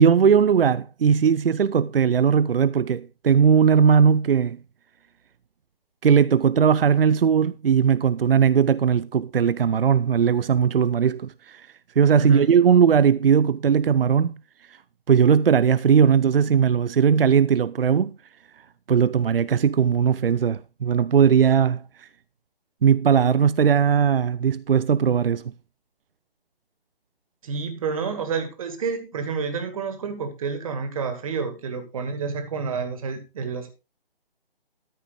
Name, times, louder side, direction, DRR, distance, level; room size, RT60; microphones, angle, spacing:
voice 1, 0.0-4.6 6.0-11.7 12.0-14.3 15.1-18.1 18.9-22.1 22.8-25.4, right 7 dB, 65° right, 0.6 m, -19 dB
voice 2, 12.2-12.5 27.4-33.7, right 5 dB, 35° right, 2.2 m, -29 dB
13.5 x 5.6 x 4.9 m
figure-of-eight pair, 150°, 30 cm